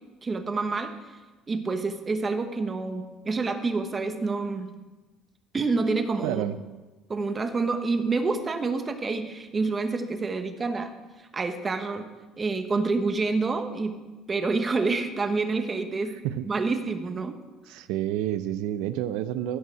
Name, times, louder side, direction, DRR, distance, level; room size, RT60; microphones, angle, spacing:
voice 1, 0.2-0.9 1.5-4.7 5.5-6.6 7.1-10.9 11.3-12.1 12.4-14.0 14.3-16.1 16.4-17.4, right 3 dB, 20° right, 7 dB, 1.1 m, -27 dB
voice 2, 6.2-6.6 16.1-16.5 17.7-19.6, right 12 dB, 90° right, 12 dB, 0.5 m, -29 dB
13.5 x 5.6 x 8.9 m, 1.2 s
cardioid pair, 150°, 0 cm